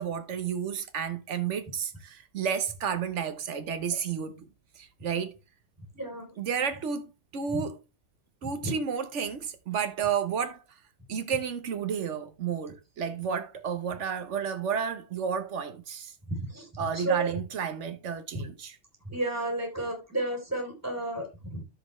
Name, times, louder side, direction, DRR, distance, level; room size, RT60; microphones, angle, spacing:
voice 1, 0.0-4.5 4.8-5.4 6.4-7.8 8.4-10.6 11.1-16.1 16.8-18.8, right 7 dB, 85° right, 1.3 m, -31 dB
voice 2, 5.9-6.3 8.4-8.7 16.3-16.7 16.9-17.3 19.1-21.6, right 2 dB, 15° right, 3.3 m, -32 dB
14.0 x 5.3 x 3.2 m
omnidirectional pair, 1.2 m